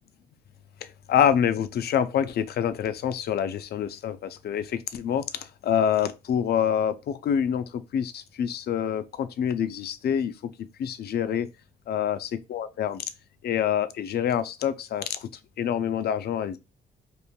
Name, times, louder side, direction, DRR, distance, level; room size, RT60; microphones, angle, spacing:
voice 1, 1.1-7.7 7.9-10.3 10.8-11.5 11.9-13.0 13.4-15.3 15.6-16.6, left 9 dB, 55° left, 0.4 m, -26 dB
3.0 x 2.4 x 2.2 m
cardioid pair, 90°, 20 cm